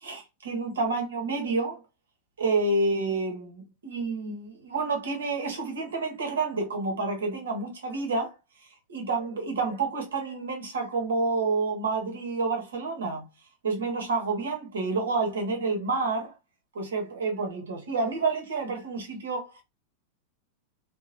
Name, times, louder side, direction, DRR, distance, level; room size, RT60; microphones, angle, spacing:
voice 1, 0.0-1.8 2.4-8.3 8.9-13.3 13.6-16.3 16.7-19.5, right 3 dB, 65° right, 1.0 m, -29 dB
2.9 x 2.2 x 2.4 m
figure-of-eight pair, 90°, 0 cm